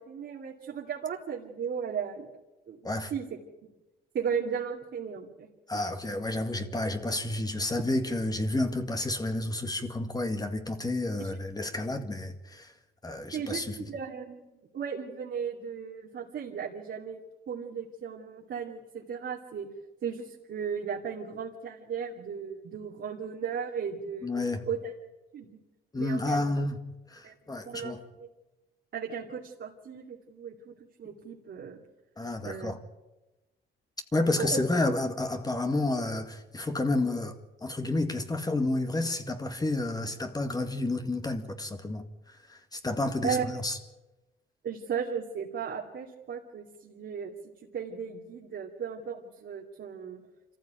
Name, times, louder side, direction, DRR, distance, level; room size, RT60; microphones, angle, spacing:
voice 1, 0.0-2.3 2.7-2.8 3.1-3.3 4.1-5.5 11.2-11.4 13.3-13.6 13.9-14.4 14.7-17.2 17.5-19.7 20.0-24.3 24.6-24.9 25.3-25.6 25.9-26.4 27.2-27.3 27.7-27.9 28.2-28.3 28.9-30.7 31.0-31.8 32.4-32.7 34.4-34.6 43.2-43.5 44.6-47.3 47.7-50.2, right 7 dB, 60° right, 2.6 m, -35 dB
voice 2, 5.7-12.7 13.0-13.8 24.2-24.7 25.9-26.8 27.1-28.0 32.2-32.8 34.1-37.4 37.6-42.0 42.5-43.8, left 2 dB, 20° left, 2.0 m, -30 dB
26.0 x 15.0 x 9.0 m
cardioid pair, 90°, 20 cm